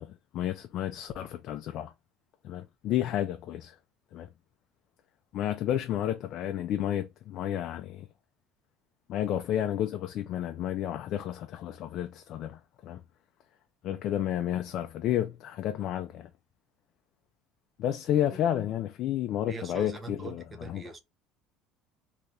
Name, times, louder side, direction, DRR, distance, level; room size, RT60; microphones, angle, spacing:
voice 1, 0.0-1.9 2.4-3.8 4.1-4.3 5.3-8.1 9.1-13.0 13.8-16.3 17.8-20.8, left 11 dB, 45° left, 0.3 m, -31 dB
voice 2, 19.5-21.0, right 3 dB, 15° right, 0.5 m, -42 dB
2.8 x 2.5 x 3.2 m
cardioid pair, 165°, 0 cm